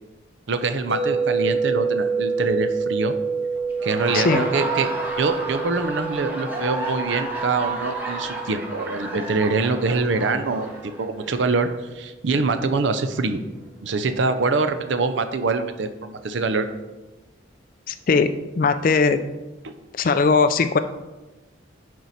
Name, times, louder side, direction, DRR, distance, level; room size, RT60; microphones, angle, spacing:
voice 1, 0.5-3.1 3.8-4.9 5.2-13.4 13.8-16.7 19.6-19.7, right 3 dB, 70° right, 9 dB, 0.5 m, -24 dB
sound 1, 0.9-11.0, right 5 dB, 85° right, 2.9 m, -28 dB
Laughter, 3.7-11.3, right 2 dB, 10° right, 1.4 m, -31 dB
voice 2, 17.9-18.3 18.6-19.2 19.9-20.8, left 4 dB, 45° left, 10 dB, 0.4 m, -19 dB
10.5 x 4.6 x 4.1 m, 1.1 s
head